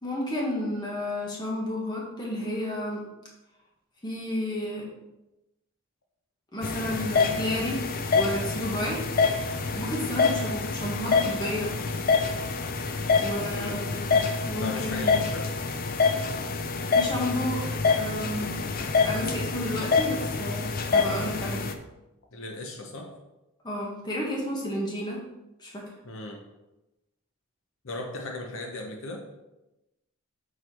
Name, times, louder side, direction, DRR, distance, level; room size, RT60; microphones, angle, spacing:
voice 1, 0.0-3.0 4.0-4.9 6.5-7.8 8.1-9.0 9.7-11.7 13.2-15.2 16.9-17.6 17.9-18.6 19.0-21.6 23.6-25.2 25.6-25.8, left 1 dB, 20° left, -3 dB, 1.4 m, -31 dB
sound 1, 6.6-21.7, left 4 dB, 40° left, 0.4 m, -26 dB
voice 2, 14.6-15.5 22.3-23.1 26.0-26.4 27.8-29.2, left 2 dB, 65° left, 2 dB, 0.8 m, -37 dB
6.4 x 4.7 x 4.3 m, 0.97 s
head